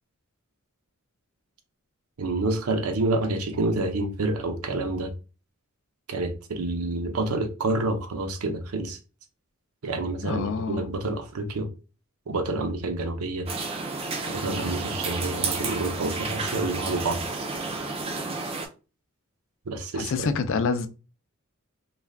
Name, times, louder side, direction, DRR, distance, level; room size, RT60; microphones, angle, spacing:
voice 1, 2.2-5.1 6.1-9.0 9.8-11.7 12.3-13.5 14.3-17.2 19.7-20.3, right 2 dB, 80° right, 0.6 m, -28 dB
voice 2, 10.2-10.8 19.9-20.9, left 5 dB, 60° left, 0.4 m, -27 dB
sound 1, 13.5-18.7, right 3 dB, 25° right, 0.4 m, -31 dB
2.4 x 2.2 x 3.3 m
head